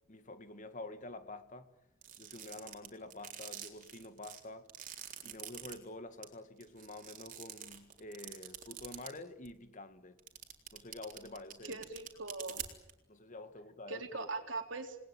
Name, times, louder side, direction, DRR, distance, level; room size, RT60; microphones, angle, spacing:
voice 1, 0.1-1.7 2.2-4.7 5.2-10.2 10.7-11.8 13.1-14.3, left 2 dB, 40° left, 2.0 m, -48 dB
sound 1, 2.0-5.7 6.2-6.3 6.6-9.1 9.4-9.5 10.2-12.9, right 10 dB, 40° right, 3.9 m, -45 dB
voice 2, 11.6-12.6 13.9-15.0, right 3 dB, 70° right, 3.5 m, -41 dB
29.0 x 20.5 x 9.1 m
head